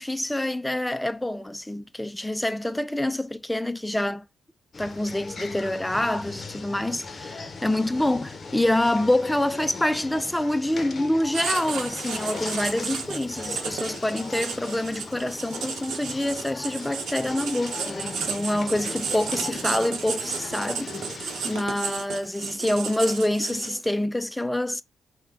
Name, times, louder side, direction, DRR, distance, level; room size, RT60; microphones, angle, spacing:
voice 1, 0.0-4.2 4.8-24.8, left 1 dB, 10° left, 0.3 m, -26 dB
sound 1, 4.7-21.6, left 4 dB, 40° left, 0.7 m, -38 dB
Writing, 11.3-23.9, right 6 dB, 75° right, 0.8 m, -33 dB
3.7 x 2.2 x 3.6 m
cardioid pair, 85°, 0 cm